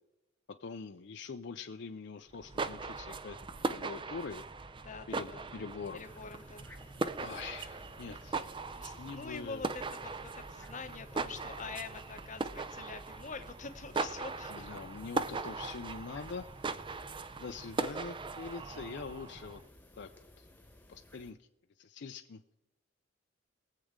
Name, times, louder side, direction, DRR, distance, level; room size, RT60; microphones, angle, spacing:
voice 1, 0.6-3.4 3.7-4.4 5.1-6.0 7.2-8.5 8.9-9.6 14.5-16.5 17.4-19.6 20.0-20.5 20.9-21.4 21.8-22.4, left 4 dB, 60° left, 7 dB, 0.5 m, -44 dB
sound 1, 2.3-19.7, right 3 dB, 25° right, 0.5 m, -39 dB
voice 2, 4.8-5.5 5.9-7.1 8.8-14.7 18.7-18.9, left 4 dB, 40° left, 9 dB, 0.8 m, -46 dB
sound 2, 6.0-21.3, left 1 dB, 10° left, 1.2 m, -58 dB
22.5 x 7.6 x 3.7 m, 0.93 s
head